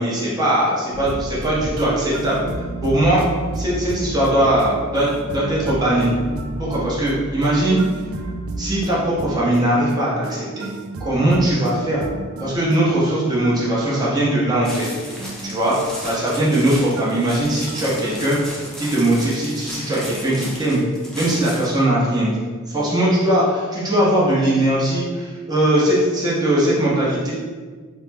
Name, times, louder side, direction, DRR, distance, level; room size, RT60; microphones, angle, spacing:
voice 1, 0.0-2.4 2.8-3.2 3.5-6.1 6.6-7.8 8.6-10.7 11.0-12.1 12.4-14.9 15.4-20.8 21.1-22.3 22.7-27.3, right 1 dB, 20° right, -7 dB, 0.8 m, -20 dB
sound 1, 0.9-18.2, right 2 dB, 75° right, 0.3 m, -32 dB
sound 2, 14.6-21.8, equal, ahead, 0.5 m, -35 dB
3.1 x 2.2 x 3.3 m, 1.5 s
head